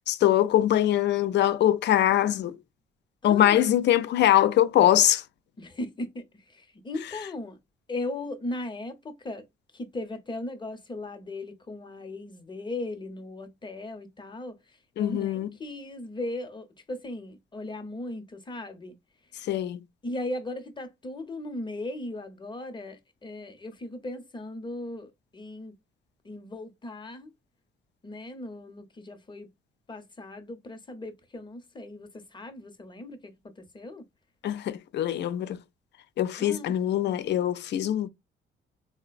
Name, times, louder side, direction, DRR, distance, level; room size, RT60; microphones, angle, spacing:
voice 1, 0.0-2.6 3.2-5.2 15.0-15.5 19.4-19.8 34.4-35.6 36.2-38.1, left 12 dB, 60° left, 0.4 m, -23 dB
voice 2, 3.2-3.7 5.6-7.6 7.9-9.4 9.7-14.6 15.0-19.0 20.0-25.7 26.2-27.3 28.0-29.5 29.9-34.0 36.4-36.7, left 2 dB, 25° left, 0.8 m, -37 dB
3.8 x 2.1 x 2.3 m
cardioid pair, 90°, 20 cm